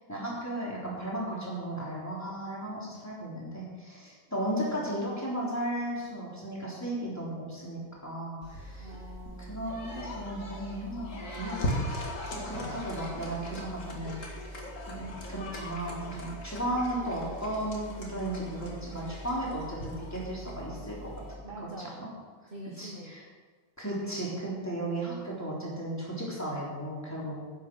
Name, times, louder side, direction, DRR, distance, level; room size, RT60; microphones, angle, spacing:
voice 1, 0.1-8.9 9.5-12.0 12.3-14.2 14.9-21.1 22.0-22.1 22.8-23.2 23.8-27.4, right 1 dB, 5° left, -6 dB, 3.5 m, -35 dB
voice 2, 4.4-4.9 8.8-9.8 21.4-22.1 22.5-23.1, right 1 dB, 35° right, 0 dB, 0.9 m, -45 dB
sound 1, 8.4-21.3, equal, 40° left, 2.3 m, -39 dB
10.5 x 9.8 x 6.2 m, 1.5 s
omnidirectional pair, 2.2 m